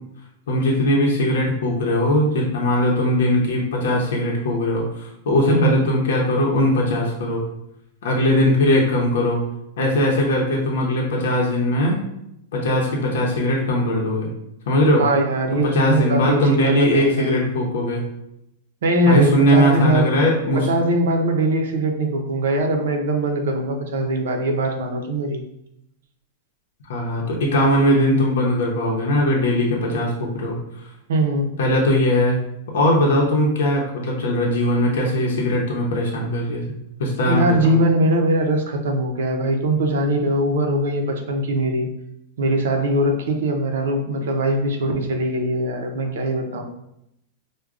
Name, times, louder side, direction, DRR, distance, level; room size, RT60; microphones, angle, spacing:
voice 1, 0.5-7.4 8.0-9.4 9.8-12.0 12.5-14.3 14.7-15.0 15.7-18.0 19.1-20.7 26.9-30.6 31.6-32.4 32.7-36.6 37.0-37.7, left 1 dB, 80° left, -2 dB, 0.7 m, -20 dB
voice 2, 5.5-5.8 15.0-17.5 18.8-20.2 20.5-25.4 31.1-31.5 37.3-41.9 42.4-46.6, right 1 dB, 85° right, 3 dB, 0.6 m, -21 dB
4.6 x 2.2 x 2.4 m, 0.80 s
supercardioid pair, 180°, 0 cm